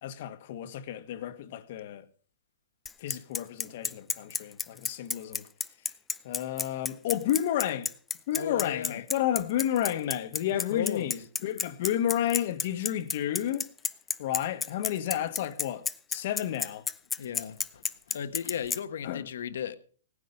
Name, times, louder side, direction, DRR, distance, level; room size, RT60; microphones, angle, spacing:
voice 1, 0.0-2.1 3.0-5.5 5.8-5.9 6.2-7.9 8.3-13.7 14.2-16.8 19.0-19.3, left 11 dB, 50° left, 1.5 m, -31 dB
Bicycle, 2.9-18.8, left 5 dB, 10° left, 0.5 m, -30 dB
voice 2, 8.4-9.0 10.7-11.1 17.2-19.8, left 9 dB, 70° left, 1.4 m, -35 dB
17.5 x 10.0 x 5.4 m
hypercardioid pair, 155°, 0 cm